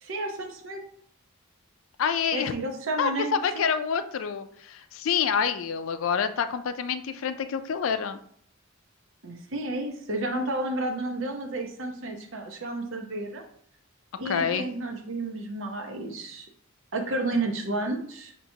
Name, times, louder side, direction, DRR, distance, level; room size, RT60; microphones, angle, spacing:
voice 1, 0.0-0.8 2.3-3.7 9.2-13.4 14.2-16.5 16.9-18.3, right 2 dB, 65° right, 3 dB, 0.8 m, -31 dB
voice 2, 2.0-2.5 3.0-8.2 14.3-14.7, left 7 dB, 70° left, 10 dB, 0.4 m, -27 dB
5.7 x 2.9 x 2.7 m, 0.62 s
head